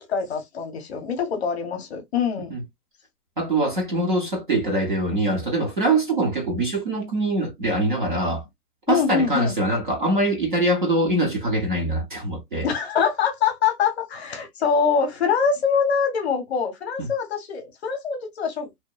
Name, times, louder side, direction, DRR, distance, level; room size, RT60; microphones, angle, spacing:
voice 1, 0.1-2.5 8.9-9.6 12.6-18.8, left 6 dB, 45° left, 0.7 m, -24 dB
voice 2, 3.4-8.4 8.9-12.7 17.0-17.1, right 1 dB, 35° right, 0.5 m, -23 dB
2.7 x 2.0 x 2.3 m
hypercardioid pair, 165°, 47 cm